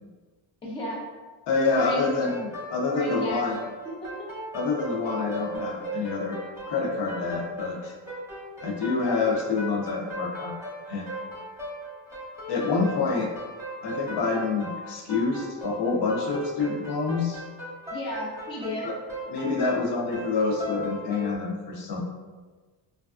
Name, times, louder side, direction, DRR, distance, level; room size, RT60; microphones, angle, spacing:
voice 1, 0.6-1.0 1.8-2.2 2.9-3.4 4.0-4.3 17.9-18.9, left 1 dB, 15° left, -4 dB, 0.4 m, -34 dB
voice 2, 1.5-3.6 4.5-6.4 6.7-7.9 8.6-10.5 10.9-11.0 12.5-13.3 13.8-17.4 18.8-18.9 19.3-22.0, left 4 dB, 65° left, -1 dB, 0.7 m, -27 dB
sound 1, 1.5-21.3, right 1 dB, 5° right, 0.8 m, -38 dB
3.2 x 2.4 x 2.4 m, 1.3 s
cardioid pair, 160°, 45 cm